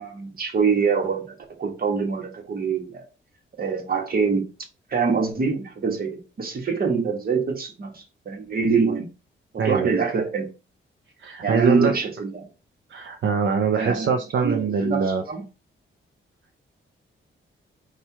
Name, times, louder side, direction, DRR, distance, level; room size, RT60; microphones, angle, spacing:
voice 1, 0.0-3.0 3.6-4.4 4.9-9.1 9.5-10.5 11.4-12.5 13.7-15.4, right 5 dB, 45° right, 1.2 m, -25 dB
voice 2, 9.6-9.9 11.2-11.9 12.9-15.2, right 5 dB, 65° right, 0.6 m, -23 dB
4.3 x 2.4 x 4.5 m
wide cardioid pair, 125°, 21 cm